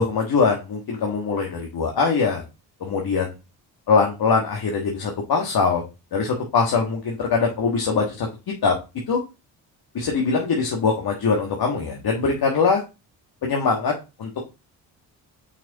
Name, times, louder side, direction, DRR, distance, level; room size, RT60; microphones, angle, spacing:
voice 1, 0.0-2.4 2.8-3.3 3.9-5.8 6.1-8.3 8.6-8.7 9.1-9.2 9.9-12.8 13.4-13.9 14.2-14.4, left 5 dB, 60° left, 1 dB, 1.5 m, -22 dB
5.9 x 4.4 x 4.0 m, 0.27 s
supercardioid pair, 70°, 42 cm